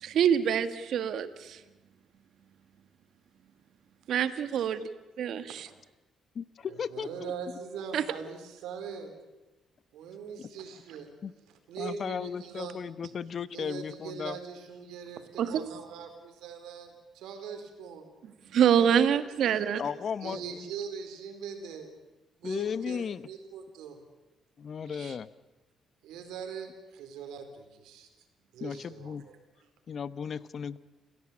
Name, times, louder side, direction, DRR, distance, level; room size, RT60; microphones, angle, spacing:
voice 1, 0.0-1.6 4.1-4.9 5.2-5.7 7.9-8.0 15.4-15.5 18.5-19.8, right 8 dB, 70° right, 11 dB, 1.7 m, -25 dB
voice 2, 6.3-7.3 10.4-10.5 11.2-11.3 11.8-14.4 19.8-20.7 22.4-23.3 24.6-25.3 28.6-29.2 29.9-30.8, left 7 dB, 50° left, 16 dB, 1.0 m, -35 dB
voice 3, 6.9-9.1 9.9-11.1 11.7-12.8 13.5-18.0 18.8-19.0 19.4-19.6 20.2-21.9 22.4-24.0 26.0-28.1 28.5-29.4, right 6 dB, 90° right, 6 dB, 4.2 m, -41 dB
29.0 x 16.5 x 8.7 m, 1.1 s
cardioid pair, 90°, 0 cm